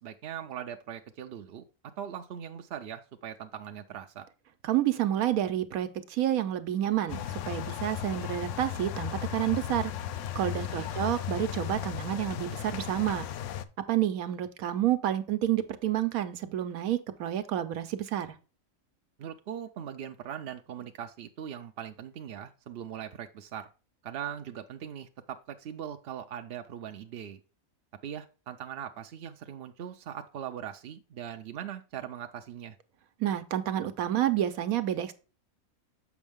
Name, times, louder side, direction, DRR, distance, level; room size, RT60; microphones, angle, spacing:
voice 1, 0.0-1.6 2.0-4.3 10.5-10.9 19.2-23.7 24.0-27.4 28.0-32.8, right 9 dB, 60° right, 5 dB, 0.6 m, -40 dB
voice 2, 4.6-9.9 10.3-13.2 13.9-18.3 33.2-35.1, right 12 dB, 85° right, 10 dB, 1.2 m, -29 dB
sound 1, 7.1-13.6, left 10 dB, 70° left, 0.8 m, -36 dB
7.1 x 5.3 x 3.5 m, 0.34 s
omnidirectional pair, 1.5 m